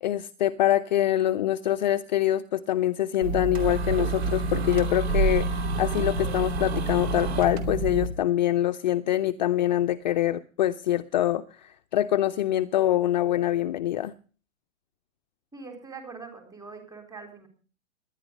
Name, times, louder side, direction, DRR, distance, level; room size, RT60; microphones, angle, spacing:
voice 1, 0.0-14.1, left 13 dB, 35° left, 11 dB, 0.6 m, -25 dB
sound 1, 3.2-8.1, right 3 dB, 50° right, 2.6 m, -27 dB
voice 2, 15.5-17.5, right 4 dB, 10° right, 5 dB, 4.1 m, -43 dB
19.0 x 11.0 x 5.4 m, 0.39 s
figure-of-eight pair, 120°, 40 cm